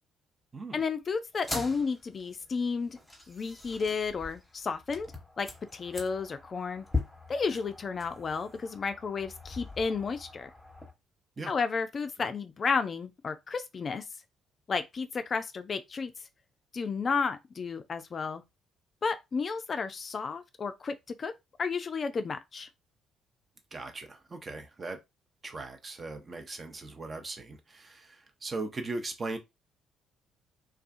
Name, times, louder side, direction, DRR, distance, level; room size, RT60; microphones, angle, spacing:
voice 1, 0.7-3.0 3.3-5.1 5.4-6.9 7.3-10.5 11.5-14.0 14.7-16.1 16.7-18.4 19.0-21.3 21.6-22.7, left 5 dB, 40° left, 0.3 m, -32 dB
sound 1, 1.3-10.9, left 3 dB, 10° left, 1.0 m, -41 dB
voice 2, 23.7-25.0 25.4-29.4, right 3 dB, 35° right, 0.6 m, -39 dB
2.3 x 2.3 x 2.5 m
hypercardioid pair, 45°, 0 cm